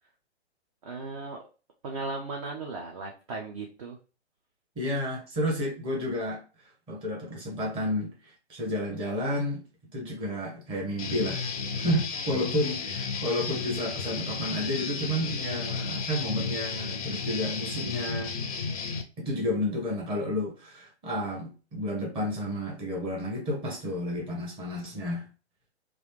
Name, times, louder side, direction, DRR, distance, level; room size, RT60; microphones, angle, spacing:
voice 1, 0.8-1.4 1.8-4.0, right 3 dB, 30° right, 0.6 m, -36 dB
voice 2, 4.8-6.4 6.9-9.6 9.9-11.4 11.7-18.3 19.2-25.2, left 1 dB, 15° right, 1.0 m, -31 dB
Guitar, 11.0-19.0, left 5 dB, 35° left, 0.4 m, -33 dB
3.1 x 2.5 x 3.2 m
figure-of-eight pair, 125°, 34 cm